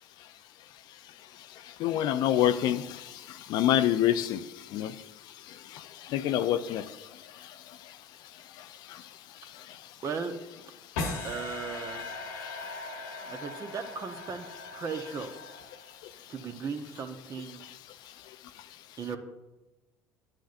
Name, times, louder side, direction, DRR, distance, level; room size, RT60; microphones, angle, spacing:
voice 1, 1.8-2.8 3.5-4.4 4.7-4.9 6.1-6.8, left 11 dB, 60° left, 12 dB, 0.5 m, -25 dB
voice 2, 10.0-10.4 11.2-12.0 13.3-14.5 14.7-15.3 16.3-17.6 19.0-19.2, right 5 dB, 40° right, 7 dB, 1.1 m, -36 dB
sound 1, 11.0-16.2, left 3 dB, 75° left, 1.3 m, -39 dB
11.5 x 9.0 x 2.6 m, 1.1 s
hypercardioid pair, 60°, 8 cm